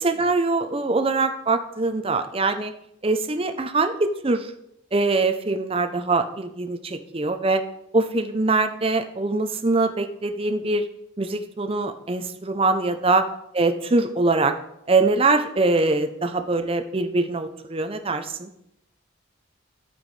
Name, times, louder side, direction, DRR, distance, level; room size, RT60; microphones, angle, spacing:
voice 1, 0.0-2.7 3.0-4.5 4.9-7.6 7.9-10.8 11.2-13.2 13.5-14.5 14.9-18.5, right 3 dB, 25° right, 8 dB, 0.6 m, -23 dB
10.0 x 9.1 x 3.3 m, 0.79 s
head